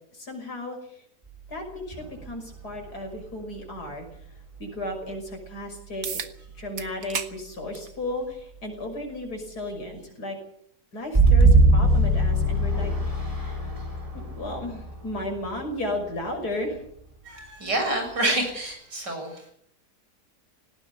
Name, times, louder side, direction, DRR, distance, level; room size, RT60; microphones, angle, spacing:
voice 1, 0.1-1.0 1.5-4.1 4.6-6.2 6.6-10.4 10.9-13.7 14.1-16.8, left 1 dB, 65° left, 4 dB, 6.4 m, -34 dB
sound 1, 1.9-2.9 4.6-4.7 11.1-15.8, right 2 dB, 20° right, 4.1 m, -21 dB
sound 2, 6.0-6.3 6.8-7.3 7.7-7.9 9.0-9.1 14.0-14.1, right 7 dB, 60° right, 1.8 m, -32 dB
voice 2, 17.2-19.5, right 1 dB, 90° right, 3 dB, 7.9 m, -28 dB
19.0 x 18.0 x 8.2 m, 0.69 s
omnidirectional pair, 1.8 m